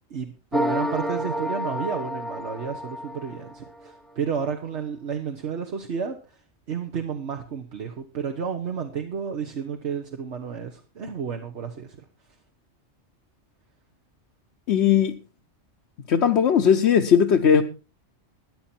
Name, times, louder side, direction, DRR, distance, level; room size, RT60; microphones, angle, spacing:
voice 1, 0.1-6.4 6.7-12.0, right 6 dB, 65° right, 1.4 m, -31 dB
sound 1, 0.5-3.9, equal, ahead, 0.7 m, -29 dB
voice 2, 14.7-15.2 16.1-17.6, left 8 dB, 65° left, 1.0 m, -18 dB
14.0 x 10.0 x 4.4 m
omnidirectional pair, 1.2 m